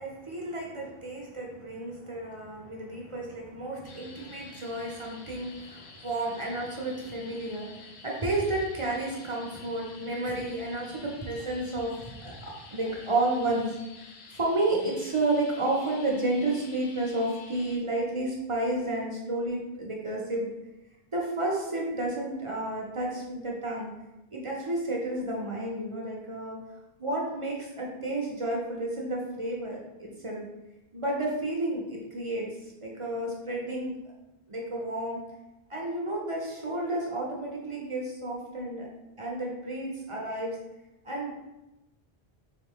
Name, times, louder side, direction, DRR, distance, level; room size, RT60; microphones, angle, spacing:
voice 1, 0.0-13.8 14.3-20.5 21.1-23.9 24.3-26.6 27.0-30.4 30.9-33.9 34.5-35.2 35.7-38.9 39.2-40.6 41.0-41.3, right 2 dB, 35° right, -2 dB, 0.7 m, -31 dB
sound 1, 3.8-17.8, left 4 dB, 75° left, 0.9 m, -50 dB
3.8 x 3.1 x 3.6 m, 0.98 s
omnidirectional pair, 1.1 m